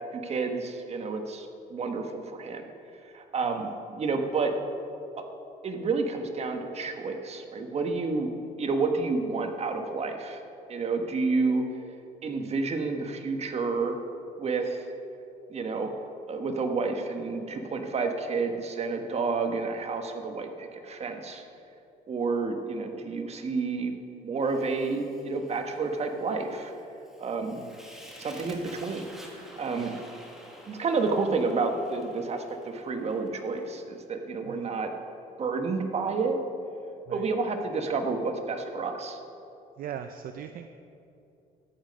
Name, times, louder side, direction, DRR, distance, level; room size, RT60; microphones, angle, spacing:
voice 1, 0.1-2.6 3.1-4.5 5.2-5.3 5.6-8.3 8.6-10.4 10.7-11.6 12.2-14.0 14.4-14.8 15.5-15.9 16.3-21.4 22.1-23.9 24.2-26.7 27.2-27.6 28.2-29.0 29.3-30.0 30.7-34.9 35.4-36.4 37.1-39.2, right 4 dB, 40° right, 5 dB, 1.3 m, -30 dB
Fire, 24.4-33.7, equal, 5° right, 2.0 m, -50 dB
voice 2, 39.8-40.7, right 9 dB, 60° right, 8 dB, 0.5 m, -40 dB
13.5 x 8.9 x 5.3 m, 2.7 s
cardioid pair, 110°, 17 cm